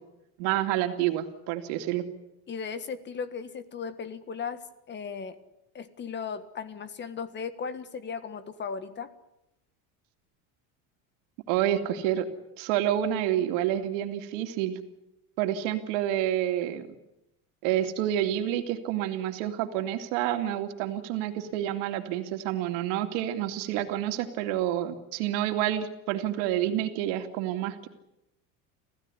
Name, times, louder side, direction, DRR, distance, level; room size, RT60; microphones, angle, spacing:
voice 1, 0.4-2.1 11.5-12.3 12.6-14.8 15.4-16.9 17.6-27.9, right 12 dB, 85° right, 6 dB, 2.7 m, -28 dB
voice 2, 2.5-4.6 4.9-5.4 5.7-9.1, left 6 dB, 30° left, 13 dB, 1.6 m, -36 dB
27.0 x 16.0 x 9.8 m, 0.88 s
cardioid pair, 145°, 36 cm